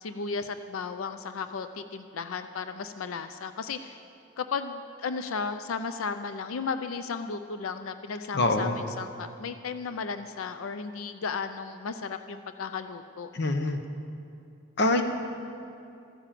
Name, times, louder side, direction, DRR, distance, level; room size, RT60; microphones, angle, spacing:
voice 1, 0.0-4.0 4.4-13.3, left 5 dB, 80° left, 9 dB, 0.5 m, -34 dB
voice 2, 8.3-8.8 13.3-13.8 14.8-15.0, left 2 dB, 55° left, 6 dB, 1.0 m, -24 dB
13.0 x 9.9 x 7.6 m, 2.6 s
head